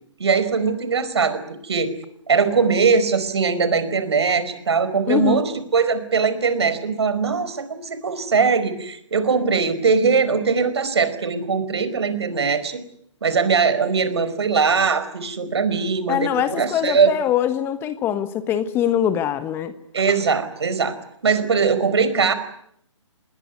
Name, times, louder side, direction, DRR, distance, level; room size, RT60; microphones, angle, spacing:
voice 1, 0.2-1.9 2.3-12.8 13.2-17.1 19.9-20.9 21.2-22.3, right 5 dB, 55° right, 13 dB, 4.9 m, -21 dB
voice 2, 5.1-5.4 16.1-19.7, left 11 dB, 15° left, 12 dB, 1.1 m, -23 dB
28.0 x 21.0 x 9.5 m, 0.72 s
figure-of-eight pair, 135°, 16 cm